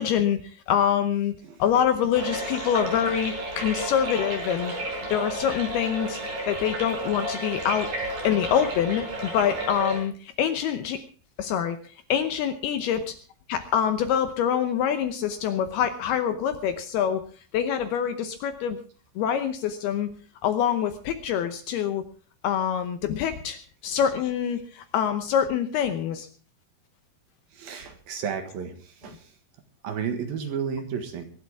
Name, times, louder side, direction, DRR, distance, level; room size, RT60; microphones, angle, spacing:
voice 1, 0.0-1.3 1.6-4.7 5.1-7.9 8.2-11.0 11.4-13.2 13.5-17.2 17.5-18.8 19.2-20.1 20.4-22.0 22.4-26.3, left 9 dB, 75° left, 10 dB, 2.5 m, -25 dB
sound 1, 2.1-10.0, right 1 dB, 45° right, 6.6 m, -32 dB
voice 2, 27.6-28.7 29.0-29.2 29.8-31.2, right 7 dB, 60° right, 7 dB, 3.0 m, -32 dB
24.0 x 12.0 x 3.5 m, 0.40 s
omnidirectional pair, 5.3 m